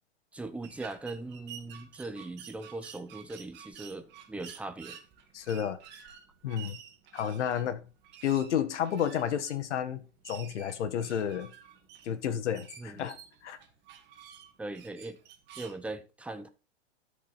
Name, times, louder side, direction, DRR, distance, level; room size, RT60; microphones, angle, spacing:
voice 1, 0.3-5.0 12.8-13.0 14.6-15.2 15.6-16.5, right 2 dB, 5° right, 0.6 m, -40 dB
sound 1, 0.6-15.8, right 9 dB, 30° right, 1.9 m, -51 dB
voice 2, 5.3-5.8 6.4-6.8 7.1-7.9 8.2-11.5 12.0-13.2 13.4-13.6, left 9 dB, 80° left, 1.7 m, -31 dB
12.5 x 5.2 x 4.1 m
hypercardioid pair, 140°, 35 cm